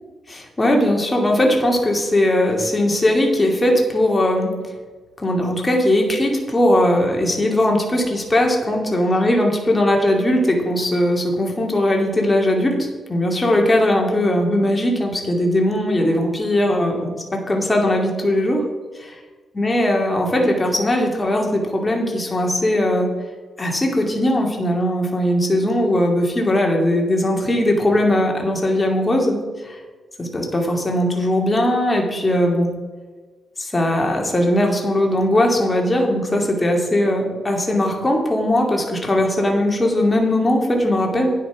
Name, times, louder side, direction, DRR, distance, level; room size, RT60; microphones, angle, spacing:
voice 1, 0.3-4.5 5.2-18.6 19.0-19.1 19.5-23.1 23.6-29.4 29.6-29.8 30.2-32.7 33.6-41.3, left 1 dB, 20° left, 0 dB, 2.3 m, -19 dB
9.4 x 8.6 x 6.0 m, 1.4 s
cardioid pair, 100°, 0 cm